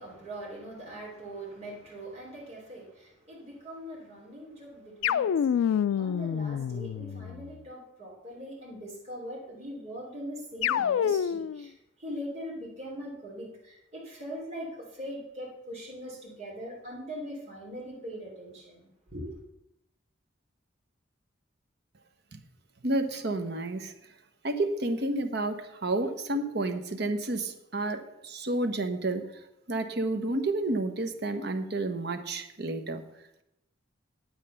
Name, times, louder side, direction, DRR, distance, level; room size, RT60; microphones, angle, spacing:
voice 1, 0.0-19.4, equal, 35° right, -4 dB, 3.4 m, -41 dB
sound 1, 5.0-7.5 10.6-11.6, left 8 dB, 85° left, 0.3 m, -27 dB
voice 2, 22.8-23.9 24.4-29.3 29.7-33.0, right 2 dB, 55° right, 7 dB, 1.0 m, -30 dB
9.0 x 8.9 x 5.6 m, 0.83 s
head